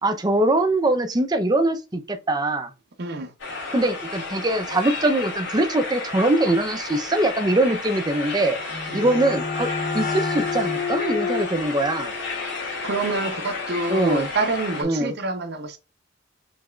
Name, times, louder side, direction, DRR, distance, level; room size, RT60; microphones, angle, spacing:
voice 1, 0.0-2.7 3.7-8.6 8.9-9.7 9.9-12.1 13.9-14.3 14.8-15.1, right 1 dB, 20° right, 0.6 m, -22 dB
voice 2, 3.0-3.3 8.9-9.1 12.6-15.8, right 3 dB, 55° right, 0.7 m, -27 dB
sound 1, 3.4-14.8, left 3 dB, 65° left, 2.4 m, -32 dB
sound 2, 8.4-13.9, left 5 dB, 40° left, 1.0 m, -31 dB
4.9 x 3.5 x 2.3 m
head